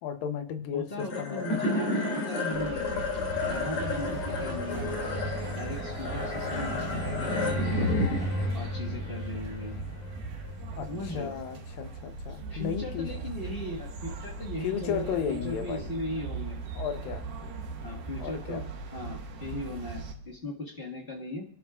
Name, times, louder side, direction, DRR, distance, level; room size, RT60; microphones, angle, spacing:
voice 1, 0.0-1.7 10.7-13.1 14.6-15.9 16.8-17.3 18.2-18.7, left 8 dB, 80° left, 8 dB, 2.7 m, -34 dB
voice 2, 0.7-3.0 3.5-5.1 5.5-7.9 8.5-9.8 10.9-11.3 12.3-16.6 17.8-18.6 18.9-21.4, left 1 dB, 35° left, -2 dB, 0.9 m, -38 dB
sound 1, 1.0-11.5, left 2 dB, 50° left, 3.8 m, -31 dB
sound 2, 2.5-20.2, right 4 dB, 90° right, 3.5 m, -39 dB
28.5 x 11.5 x 2.4 m, 0.65 s
omnidirectional pair, 4.1 m